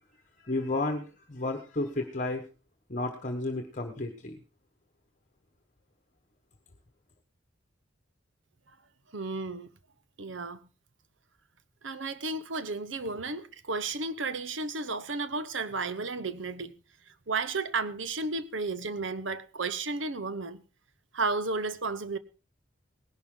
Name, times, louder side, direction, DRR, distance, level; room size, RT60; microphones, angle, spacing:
voice 1, 0.4-2.4 2.9-4.4, left 2 dB, 40° left, 1.3 m, -32 dB
voice 2, 9.1-9.7 10.2-10.6 11.8-16.7 17.3-20.6 21.1-22.2, right 3 dB, 75° right, 1.0 m, -33 dB
18.5 x 11.5 x 3.8 m
head